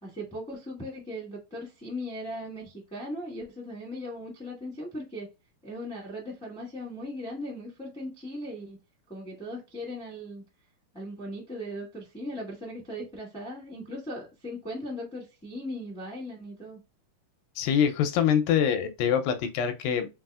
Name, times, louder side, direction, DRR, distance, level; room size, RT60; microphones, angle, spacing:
voice 1, 0.0-5.3 5.6-8.8 9.1-10.4 10.9-16.8, equal, 5° left, 0.6 m, -38 dB
voice 2, 17.6-20.1, left 8 dB, 80° left, 2.2 m, -24 dB
5.5 x 2.7 x 2.3 m
omnidirectional pair, 4.2 m